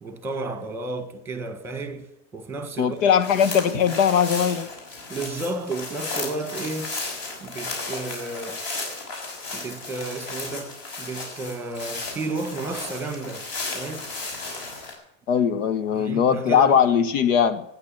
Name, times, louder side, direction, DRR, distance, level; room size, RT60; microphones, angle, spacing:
voice 1, 0.0-3.0 5.1-6.9 7.4-8.6 9.5-13.5 13.7-14.1 15.9-16.7, right 3 dB, 5° right, 1.5 m, -32 dB
voice 2, 2.8-4.7 15.3-17.6, left 8 dB, 85° left, 1.4 m, -20 dB
sound 1, 3.0-14.9, left 3 dB, 45° left, 6.0 m, -34 dB
14.5 x 9.7 x 9.0 m
supercardioid pair, 165°, 38 cm